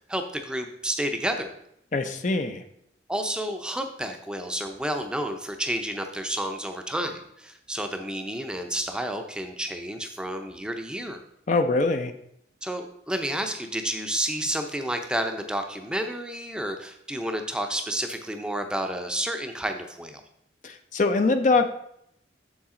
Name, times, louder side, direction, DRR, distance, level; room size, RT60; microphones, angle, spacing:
voice 1, 0.1-1.5 3.1-11.2 12.6-20.2, right 1 dB, 5° right, 5 dB, 0.6 m, -30 dB
voice 2, 1.9-2.6 11.5-12.1 20.6-21.7, left 3 dB, 45° left, 7 dB, 0.5 m, -23 dB
7.2 x 7.0 x 3.7 m, 0.74 s
head